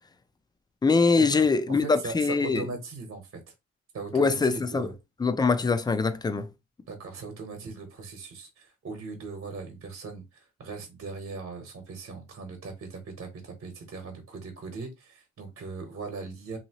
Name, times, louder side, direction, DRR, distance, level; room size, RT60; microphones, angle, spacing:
voice 1, 0.8-2.7 4.1-4.9 5.2-6.5, left 4 dB, 15° left, 0.4 m, -23 dB
voice 2, 1.8-3.4 3.9-4.9 6.9-16.6, right 4 dB, 45° right, 1.1 m, -39 dB
2.8 x 2.7 x 2.8 m
cardioid pair, 90°, 30 cm